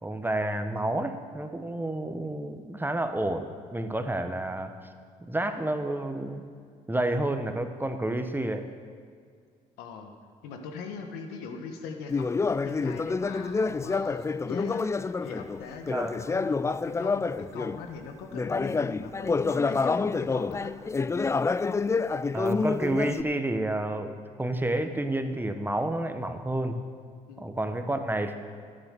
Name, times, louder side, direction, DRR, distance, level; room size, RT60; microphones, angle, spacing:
voice 1, 0.0-4.7 5.2-6.5 6.9-8.7 15.9-16.1 22.3-26.8 27.4-28.3, right 1 dB, 10° right, 7 dB, 1.2 m, -30 dB
voice 2, 9.8-10.1 10.4-20.7 27.3-27.6, left 5 dB, 80° left, 5 dB, 1.4 m, -41 dB
Conversation, 12.1-17.8 18.3-23.2, left 4 dB, 15° left, 0.4 m, -28 dB
11.5 x 9.1 x 6.6 m, 2.1 s
hypercardioid pair, 60°, 16 cm